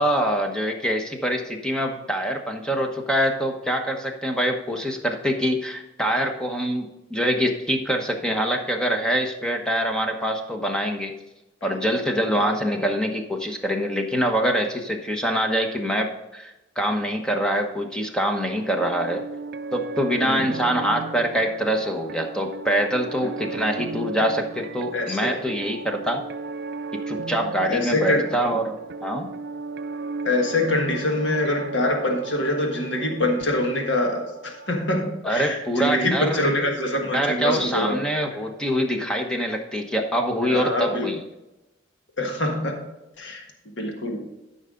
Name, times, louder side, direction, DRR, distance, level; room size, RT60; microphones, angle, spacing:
voice 1, 0.0-11.1 11.6-19.2 19.7-26.2 27.1-28.8 29.0-29.3 35.2-36.5 37.1-41.2, equal, 5° left, 3 dB, 1.1 m, -24 dB
sound 1, 18.5-35.0, right 3 dB, 55° right, 0.5 m, -36 dB
voice 2, 27.7-28.2 30.2-38.0 40.4-41.1 42.2-42.8 43.2-44.2, left 1 dB, 65° left, 2 dB, 1.6 m, -25 dB
13.0 x 5.7 x 3.8 m, 0.98 s
head